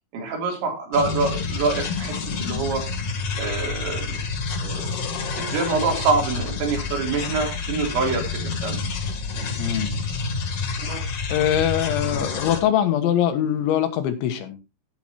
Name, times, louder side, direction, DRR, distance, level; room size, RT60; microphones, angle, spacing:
voice 1, 0.1-2.2 2.4-2.8 3.4-4.2 4.6-4.9 5.4-8.8 10.8-11.0, right 4 dB, 80° right, 2 dB, 5.8 m, -25 dB
sound 1, 0.9-12.6, left 4 dB, 45° left, 2.4 m, -28 dB
voice 2, 9.6-9.9 10.9-11.0 11.3-14.6, left 10 dB, 90° left, 8 dB, 3.7 m, -22 dB
16.0 x 8.8 x 3.0 m, 0.26 s
omnidirectional pair, 5.2 m